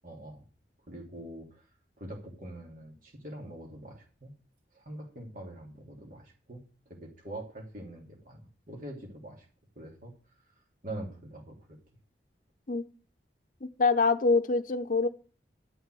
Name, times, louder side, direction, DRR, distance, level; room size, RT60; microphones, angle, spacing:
voice 1, 0.0-0.4 0.9-1.7 2.0-4.3 4.7-9.5 9.7-10.1 10.8-11.8, right 1 dB, 50° right, 0 dB, 3.0 m, -44 dB
voice 2, 13.6-15.1, left 3 dB, 50° left, 9 dB, 0.7 m, -25 dB
11.5 x 5.7 x 7.6 m, 0.38 s
head